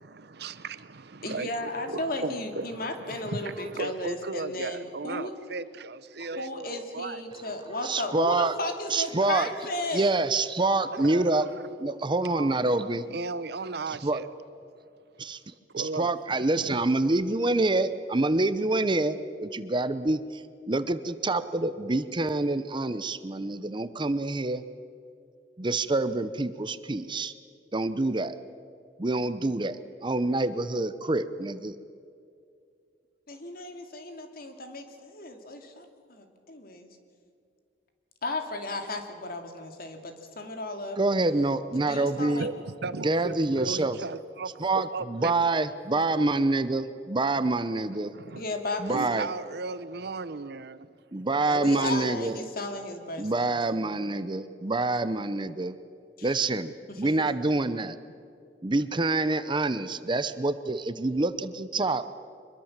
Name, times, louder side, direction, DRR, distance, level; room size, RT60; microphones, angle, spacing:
voice 1, 0.0-7.2 10.9-11.7 12.2-14.3 15.3-15.4 15.7-16.1 16.7-16.8 42.2-45.3 47.2-47.4 48.1-48.4 48.9-50.9, right 3 dB, 65° right, 0.8 m, -36 dB
voice 2, 1.2-5.3 6.4-10.2 33.3-36.9 38.2-41.0 41.7-42.5 45.9-46.1 48.3-49.3 51.4-53.9 56.2-56.3 57.0-57.1, left 2 dB, 55° left, 2.6 m, -35 dB
voice 3, 7.8-8.5 8.9-9.5 9.9-11.5 11.8-13.0 13.9-14.2 15.2-24.6 25.6-27.3 27.7-28.4 29.0-31.7 41.0-42.4 43.0-44.0 44.6-48.1 48.8-49.3 51.1-52.4 53.2-55.8 56.2-58.0 58.6-62.0, right 2 dB, 25° right, 0.7 m, -27 dB
24.5 x 22.0 x 7.4 m
head